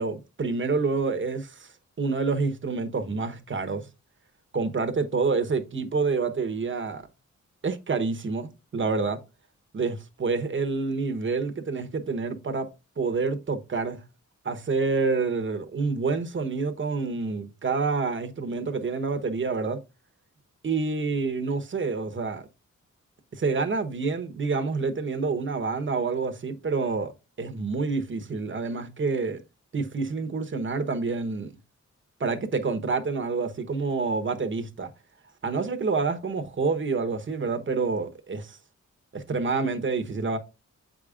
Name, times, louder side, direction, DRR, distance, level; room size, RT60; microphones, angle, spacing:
voice 1, 0.0-1.7 2.0-3.8 4.5-7.1 7.6-9.2 9.7-12.7 13.0-14.0 14.4-19.8 20.6-22.5 23.3-27.1 27.4-29.4 29.7-31.5 32.2-34.9 35.4-38.6 39.1-40.4, right 4 dB, 40° right, 1.0 m, -28 dB
7.7 x 5.0 x 2.4 m
cardioid pair, 90°, 31 cm